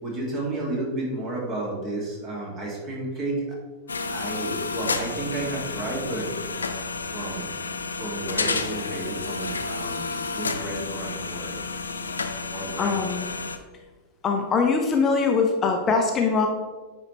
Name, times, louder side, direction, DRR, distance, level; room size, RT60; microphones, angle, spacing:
voice 1, 0.0-3.5 4.1-6.3 7.1-7.5 7.9-11.5 12.5-13.0, right 2 dB, 30° right, -3 dB, 2.2 m, -32 dB
sound 1, 3.9-13.6, left 4 dB, 75° left, 0.5 m, -31 dB
voice 2, 12.8-13.3 14.2-16.5, left 4 dB, 25° left, 3 dB, 0.7 m, -22 dB
9.7 x 4.3 x 3.2 m, 1.3 s
figure-of-eight pair, 90°, 0 cm